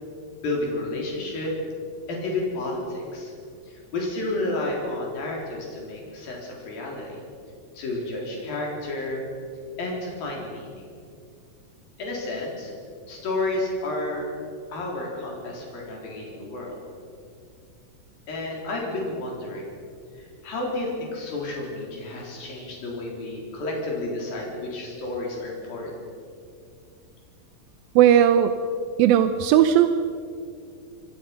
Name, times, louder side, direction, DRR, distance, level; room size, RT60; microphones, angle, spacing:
voice 1, 0.4-1.5 2.1-3.3 3.7-7.2 7.7-9.3 9.8-10.8 12.0-12.7 13.1-14.3 14.7-16.8 18.3-19.7 20.1-25.9, left 2 dB, 80° left, -2 dB, 5.7 m, -31 dB
voice 2, 28.0-28.6 29.0-29.9, right 10 dB, 90° right, 9 dB, 2.7 m, -17 dB
27.5 x 23.5 x 5.9 m, 2.3 s
omnidirectional pair, 4.0 m